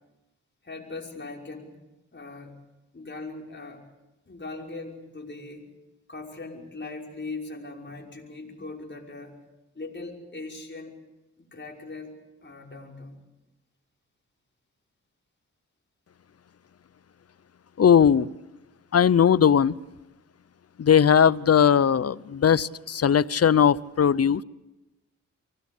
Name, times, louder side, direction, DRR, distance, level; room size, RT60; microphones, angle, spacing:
voice 1, 0.6-1.8 2.1-2.6 2.9-3.8 4.3-5.7 6.1-9.4 9.7-10.9 11.4-12.1 12.4-13.2, left 3 dB, 35° left, 0 dB, 5.7 m, -40 dB
voice 2, 17.8-18.3 18.9-19.8 20.8-24.4, left 8 dB, 50° left, 20 dB, 0.7 m, -19 dB
24.5 x 19.0 x 8.4 m, 1.0 s
cardioid pair, 50°, 31 cm